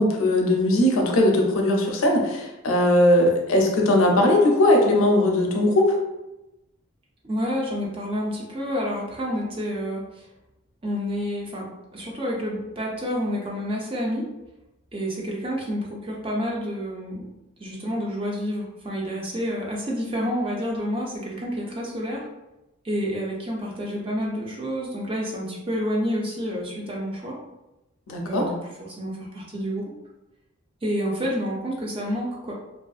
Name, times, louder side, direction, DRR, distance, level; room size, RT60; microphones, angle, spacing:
voice 1, 0.0-6.0 28.1-28.4, left 1 dB, 80° left, 1 dB, 0.5 m, -19 dB
voice 2, 7.2-10.3 10.8-14.3 14.9-17.3 17.6-22.3 22.8-27.4 28.2-29.8 30.8-32.5, equal, 25° right, -2 dB, 0.4 m, -29 dB
2.4 x 2.4 x 2.3 m, 0.96 s
head